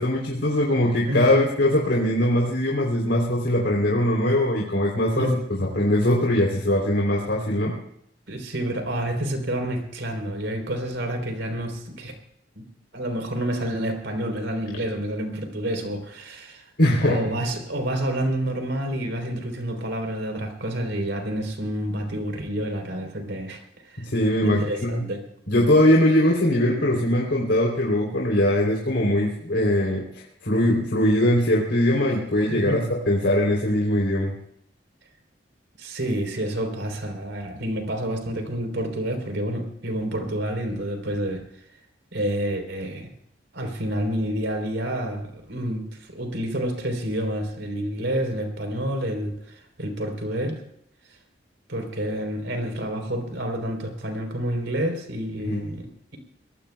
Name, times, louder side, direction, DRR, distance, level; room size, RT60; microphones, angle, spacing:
voice 1, 0.0-7.7 16.8-17.3 24.0-25.0 25.5-34.3 55.4-55.6, left 1 dB, 75° left, -3 dB, 3.3 m, -21 dB
voice 2, 1.1-1.5 5.1-5.3 8.3-12.2 12.5-12.6 12.9-16.7 17.1-24.1 24.4-25.2 32.5-32.8 35.8-41.4 42.1-43.1 43.5-50.6 51.7-56.2, right 1 dB, 90° right, 5 dB, 3.7 m, -29 dB
24.0 x 19.0 x 2.3 m, 0.72 s
head